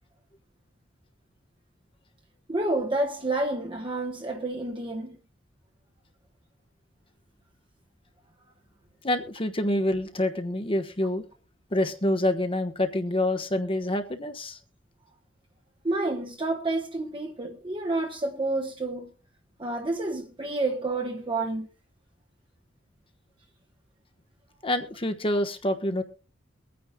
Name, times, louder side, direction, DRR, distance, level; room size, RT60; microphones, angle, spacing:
voice 1, 2.5-5.2 15.8-19.1 19.6-21.7, right 2 dB, 25° right, 1.2 m, -29 dB
voice 2, 9.0-11.2 11.7-14.6 24.6-26.0, left 1 dB, 25° left, 1.2 m, -27 dB
23.0 x 9.6 x 2.3 m
head